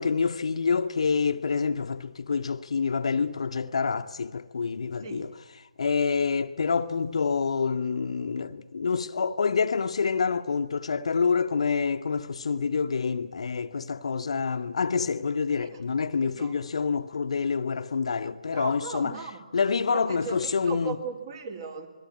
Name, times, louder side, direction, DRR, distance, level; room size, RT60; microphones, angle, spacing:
voice 1, 0.0-5.3 5.8-19.1 19.5-21.0, left 5 dB, 55° left, 1.0 m, -27 dB
voice 2, 16.2-16.6 18.5-19.4 19.9-21.9, right 5 dB, 35° right, 3.0 m, -38 dB
27.5 x 21.5 x 8.7 m
figure-of-eight pair, 145°, 4 cm